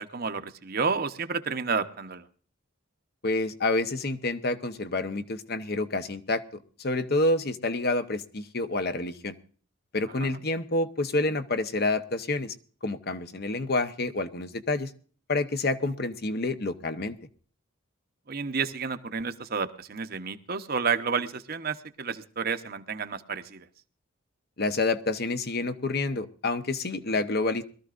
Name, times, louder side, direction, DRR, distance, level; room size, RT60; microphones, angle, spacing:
voice 1, 0.0-2.2 10.2-10.4 18.3-23.7, right 5 dB, 50° right, 9 dB, 0.9 m, -31 dB
voice 2, 3.2-6.4 6.8-9.4 9.9-12.5 12.8-14.9 15.3-17.2 24.6-27.6, left 2 dB, 50° left, 10 dB, 0.9 m, -28 dB
22.5 x 13.5 x 2.5 m, 0.42 s
head